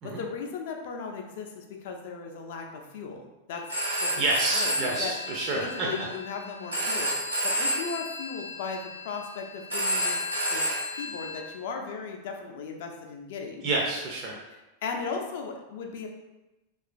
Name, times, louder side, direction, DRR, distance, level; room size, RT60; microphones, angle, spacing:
voice 1, 0.0-3.6 4.0-5.1 5.5-10.2 10.5-10.7 10.9-13.7 14.8-16.1, left 5 dB, 55° left, 3 dB, 0.4 m, -37 dB
Telephone, 3.5-11.4, equal, 80° right, 1.1 m, -31 dB
voice 2, 4.2-5.9 13.6-14.4, right 2 dB, 35° right, -2 dB, 0.4 m, -28 dB
3.0 x 2.4 x 2.3 m, 1.0 s
figure-of-eight pair, 90°, 0 cm